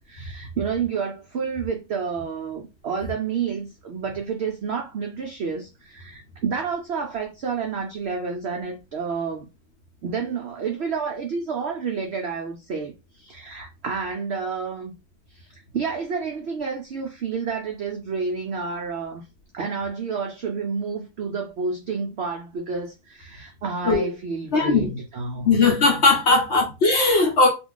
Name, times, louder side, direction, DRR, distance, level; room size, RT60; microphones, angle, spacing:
voice 1, 0.1-9.5 10.0-14.9 15.3-19.2 19.5-25.5 26.3-26.4, right 5 dB, 75° right, 0.6 m, -30 dB
voice 2, 24.5-24.9 25.4-27.5, left 3 dB, 60° left, 0.8 m, -18 dB
2.4 x 2.3 x 3.7 m
omnidirectional pair, 1.7 m